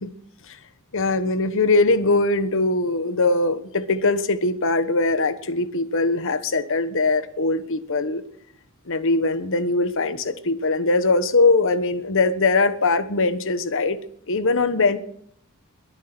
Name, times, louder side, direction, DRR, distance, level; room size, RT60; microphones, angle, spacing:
voice 1, 0.9-8.2 8.9-14.0 14.3-15.0, left 3 dB, 65° left, 12 dB, 1.3 m, -21 dB
21.5 x 9.4 x 6.0 m, 0.71 s
head